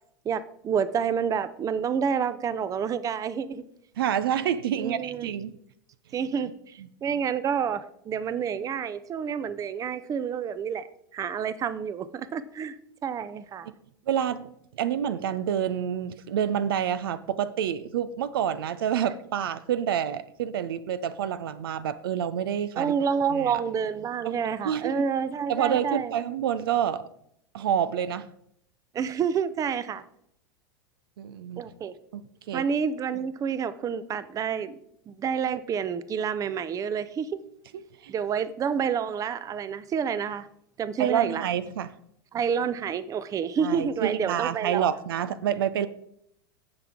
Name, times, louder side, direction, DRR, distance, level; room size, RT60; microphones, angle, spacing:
voice 1, 0.2-3.6 4.7-5.3 6.1-10.8 11.1-13.7 22.8-26.1 28.9-30.0 31.6-32.0 32.5-34.8 35.1-37.3 38.1-40.5 40.8-41.4 42.3-44.9, right 7 dB, 25° right, 15 dB, 0.7 m, -29 dB
voice 2, 4.0-5.5 13.7-13.8 14.1-14.5 14.7-22.9 23.3-23.6 24.2-24.4 24.6-25.0 25.5-27.0 27.5-28.3 31.2-31.6 32.1-32.6 38.0-38.1 41.0-41.9 43.6-45.9, right 9 dB, 70° right, 14 dB, 0.6 m, -28 dB
16.5 x 5.8 x 3.7 m, 0.71 s
hypercardioid pair, 90°, 12 cm